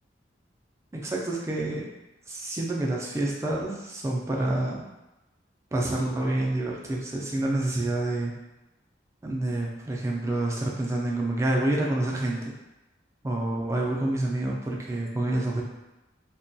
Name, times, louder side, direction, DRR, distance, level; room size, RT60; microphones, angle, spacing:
voice 1, 0.9-1.9 2.3-4.9 5.7-8.3 9.2-12.5 13.2-15.6, right 1 dB, 15° right, -2 dB, 0.3 m, -28 dB
2.2 x 2.1 x 2.6 m, 1.0 s
head